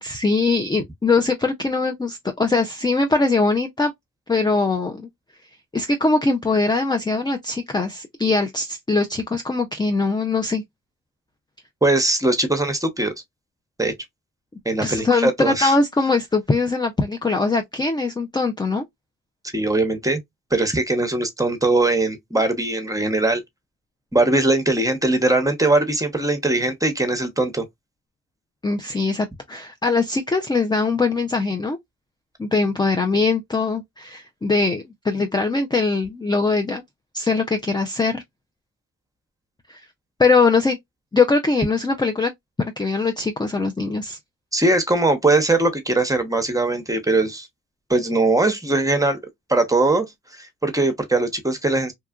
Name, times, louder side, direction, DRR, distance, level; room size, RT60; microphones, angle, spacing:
voice 1, 0.0-3.9 4.3-5.1 5.7-10.6 14.8-18.8 28.6-31.8 32.4-36.8 37.1-38.2 39.7-39.8 40.2-40.8 41.1-42.3 42.8-44.2, left 3 dB, 15° left, 0.4 m, -21 dB
voice 2, 11.8-13.1 13.8-13.9 14.6-15.7 19.5-20.2 20.5-23.4 24.1-27.7 44.5-47.5 47.9-49.2 49.5-50.1 50.3-51.9, right 2 dB, 10° right, 0.8 m, -20 dB
2.8 x 2.3 x 2.3 m
cardioid pair, 60°, 36 cm